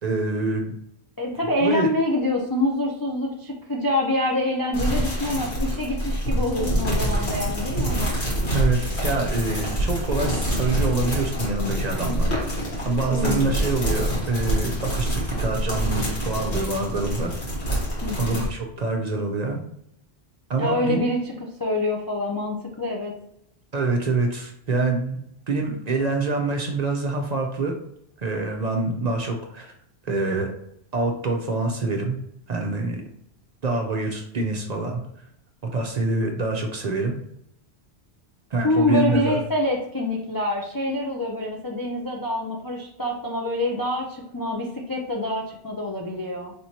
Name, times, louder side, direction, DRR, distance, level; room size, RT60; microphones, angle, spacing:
voice 1, 0.0-0.7 1.6-1.9 8.5-12.3 12.8-17.3 18.2-19.6 20.5-21.0 23.7-25.2 25.5-27.7 28.2-29.7 30.0-30.5 30.9-32.1 32.5-33.0 33.6-35.0 35.7-37.1 38.5-39.4, right 3 dB, 50° right, 2 dB, 0.6 m, -25 dB
voice 2, 1.2-8.1 13.1-13.6 18.0-18.4 20.5-21.3 21.6-23.1 38.6-46.5, left 1 dB, 35° left, -2 dB, 0.3 m, -26 dB
sound 1, 4.7-18.5, equal, 75° left, 1.9 m, -26 dB
4.4 x 3.4 x 2.8 m, 0.75 s
omnidirectional pair, 1.1 m